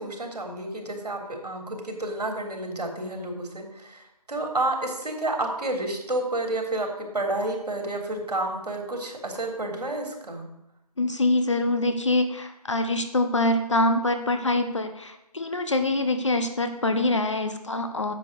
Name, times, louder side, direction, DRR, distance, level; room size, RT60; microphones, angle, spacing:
voice 1, 0.0-6.9 7.1-10.5, right 2 dB, 75° right, 2 dB, 3.6 m, -30 dB
voice 2, 11.0-18.1, left 2 dB, 45° left, 8 dB, 1.2 m, -24 dB
10.0 x 7.5 x 6.9 m, 0.86 s
figure-of-eight pair, 180°, 20 cm